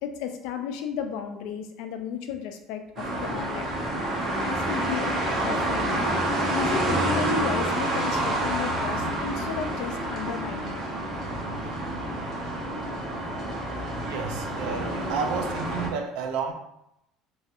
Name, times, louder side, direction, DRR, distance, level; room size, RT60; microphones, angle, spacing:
voice 1, 0.0-3.7 4.4-6.1 6.5-10.8, left 7 dB, 80° left, 6 dB, 0.4 m, -33 dB
sound 1, 3.0-15.9, right 1 dB, 40° right, 0.8 m, -28 dB
voice 2, 14.0-16.5, right 6 dB, 80° right, 5 dB, 0.5 m, -31 dB
3.0 x 2.7 x 2.4 m, 0.81 s
cardioid pair, 120°, 0 cm